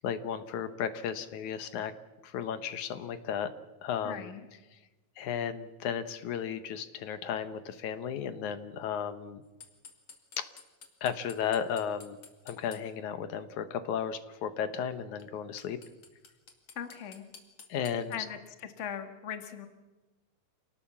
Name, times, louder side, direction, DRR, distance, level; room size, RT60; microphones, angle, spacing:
voice 1, 0.0-1.9 2.2-3.5 3.8-4.3 5.2-9.4 10.4-10.5 11.0-12.2 12.5-15.8 17.7-18.2, left 8 dB, 65° left, 11 dB, 2.1 m, -34 dB
voice 2, 4.0-4.4 16.7-17.2 18.1-19.7, left 8 dB, 85° left, 7 dB, 0.6 m, -39 dB
sound 1, 9.6-12.8 15.2-15.3 15.6-18.2, left 6 dB, 45° left, 3.0 m, -51 dB
28.0 x 19.0 x 7.3 m, 1.1 s
omnidirectional pair, 4.3 m